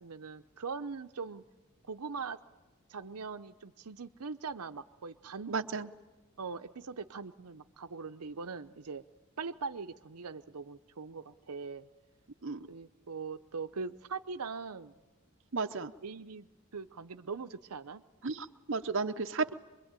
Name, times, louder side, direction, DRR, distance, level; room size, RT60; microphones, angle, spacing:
voice 1, 0.0-1.4 1.9-2.4 2.9-5.7 6.4-9.0 9.4-11.9 12.7-14.9 16.0-18.0, right 5 dB, 85° right, 9 dB, 0.8 m, -41 dB
voice 2, 5.5-5.9 12.4-12.6 15.5-15.9 18.2-19.5, right 4 dB, 55° right, 7 dB, 0.8 m, -33 dB
24.5 x 22.5 x 9.0 m, 1.2 s
head